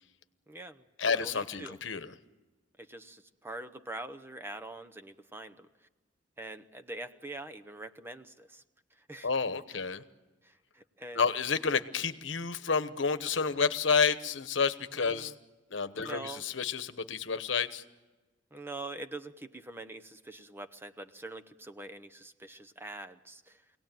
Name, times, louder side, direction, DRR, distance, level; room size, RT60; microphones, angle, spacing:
voice 1, 0.5-1.8 2.8-5.7 6.4-8.6 8.9-9.3 10.4-11.2 14.9-15.4 15.9-16.4 18.5-23.6, right 2 dB, 10° right, 8 dB, 0.8 m, -44 dB
voice 2, 1.0-2.1 9.2-10.0 11.1-15.3 15.7-17.8, left 5 dB, 85° left, 12 dB, 1.1 m, -30 dB
25.0 x 18.0 x 9.1 m, 1.2 s
head